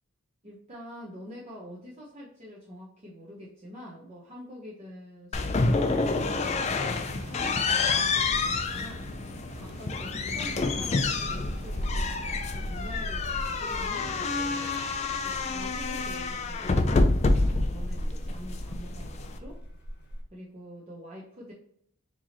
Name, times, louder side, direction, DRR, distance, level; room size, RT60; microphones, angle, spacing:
voice 1, 0.4-6.1 6.5-9.1 9.5-14.8 15.2-19.6 20.3-21.5, equal, 30° right, -5 dB, 0.8 m, -45 dB
sound 1, 5.3-19.4, left 3 dB, 30° left, 0.3 m, -28 dB
sound 2, 6.0-15.0, right 3 dB, 60° right, 0.4 m, -46 dB
sound 3, 15.0-20.2, equal, 50° left, 1.0 m, -39 dB
4.6 x 2.9 x 2.8 m, 0.67 s
head